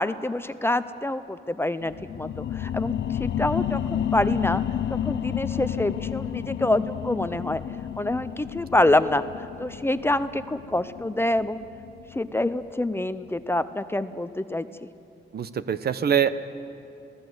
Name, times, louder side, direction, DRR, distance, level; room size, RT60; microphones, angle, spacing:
voice 1, 0.0-4.6 4.9-7.6 8.0-11.6 12.1-14.9, left 1 dB, 15° left, 12 dB, 0.5 m, -26 dB
sound 1, 1.8-13.0 13.4-13.5, left 10 dB, 80° left, 0.6 m, -31 dB
voice 2, 15.3-16.3, right 8 dB, 60° right, 13 dB, 0.8 m, -23 dB
26.0 x 17.5 x 7.9 m, 2.5 s
wide cardioid pair, 150°, 18 cm